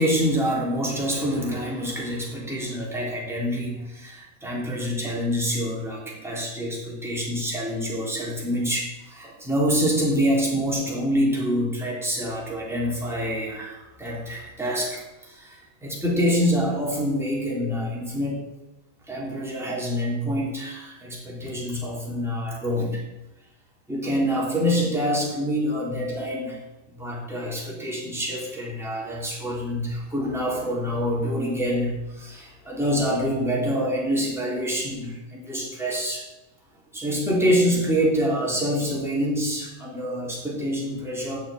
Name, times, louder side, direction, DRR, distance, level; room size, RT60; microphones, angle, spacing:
voice 1, 0.0-18.4 19.1-23.0 23.9-26.6 27.0-36.2 36.9-41.4, equal, ahead, -5 dB, 2.3 m, -26 dB
8.6 x 6.9 x 8.6 m, 0.98 s
omnidirectional pair, 4.6 m